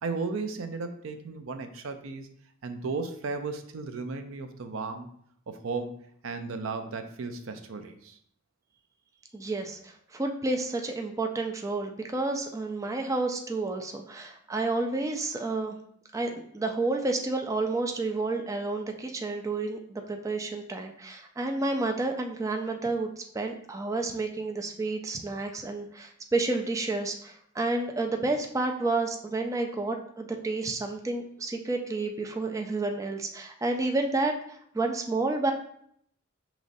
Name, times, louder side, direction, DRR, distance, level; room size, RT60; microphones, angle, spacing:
voice 1, 0.0-2.3 2.6-5.1 5.5-6.0 6.2-8.2, right 4 dB, 80° right, 8 dB, 0.5 m, -35 dB
voice 2, 9.3-15.8 16.1-35.5, right 2 dB, 15° right, 3 dB, 0.3 m, -30 dB
5.1 x 3.0 x 2.6 m, 0.66 s
head